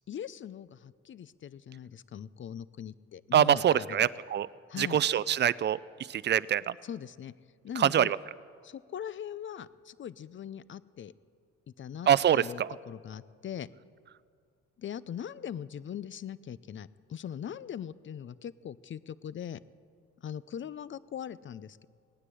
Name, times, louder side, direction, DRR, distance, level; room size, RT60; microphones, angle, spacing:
voice 1, 0.1-4.2 4.7-5.0 6.8-7.3 7.6-8.1 8.6-11.1 11.8-13.7 14.8-19.6 20.2-21.9, left 9 dB, 40° left, 19 dB, 0.5 m, -41 dB
voice 2, 3.3-4.5 4.8-5.8 6.1-6.7 7.8-8.2 12.1-12.7, right 10 dB, 35° right, 17 dB, 0.4 m, -24 dB
17.5 x 9.8 x 7.7 m, 2.1 s
cardioid pair, 90°, 30 cm